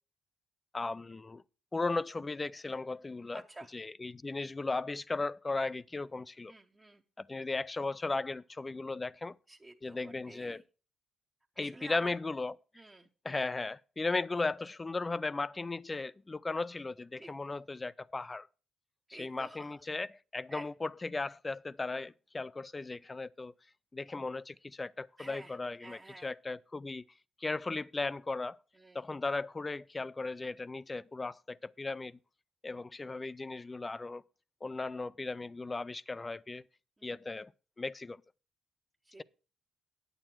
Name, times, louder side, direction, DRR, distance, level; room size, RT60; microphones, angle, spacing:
voice 1, 0.7-1.4 1.7-3.4 3.7-6.5 7.2-9.4 9.8-10.6 11.6-12.6 13.2-18.5 19.1-23.5 23.9-27.0 27.4-28.6 28.9-32.2 32.6-34.2 34.6-36.6 37.0-37.5 37.8-38.2, left 3 dB, 25° left, 0.4 m, -36 dB
voice 2, 3.3-3.7 6.5-7.0 9.5-10.6 11.6-12.1 12.7-13.1 17.2-17.3 19.1-19.8 20.5-20.7 25.2-26.3 28.8-29.1 37.0-37.3 39.1-39.2, right 2 dB, 20° right, 0.9 m, -50 dB
9.0 x 8.8 x 4.5 m
cardioid pair, 90°, 0 cm